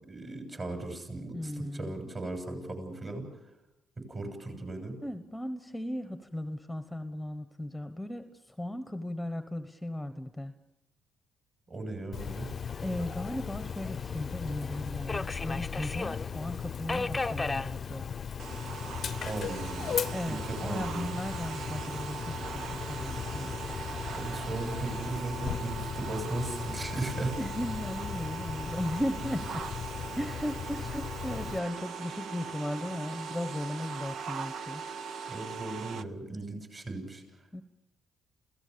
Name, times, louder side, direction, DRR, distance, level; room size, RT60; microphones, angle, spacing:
voice 1, 0.1-1.5 1.8-3.2 4.0-4.9 11.7-12.5 19.2-20.0 20.3-21.1 24.2-27.3 35.3-37.2, right 2 dB, 35° right, 5 dB, 7.2 m, -37 dB
voice 2, 1.3-1.9 5.0-10.5 12.8-18.1 20.1-23.6 26.6-26.8 27.3-29.7 30.2-34.8 35.2-35.3 36.5-36.6 37.5-37.6, left 1 dB, 5° left, 10 dB, 1.2 m, -36 dB
Dog, 12.1-31.6, left 8 dB, 55° left, 0.7 m, -38 dB
Subway metro underground, 12.2-25.2, left 3 dB, 20° left, 0.7 m, -40 dB
sound 1, 18.4-36.0, right 6 dB, 70° right, 0.8 m, -40 dB
28.5 x 16.5 x 7.0 m, 0.90 s
cardioid pair, 90°, 0 cm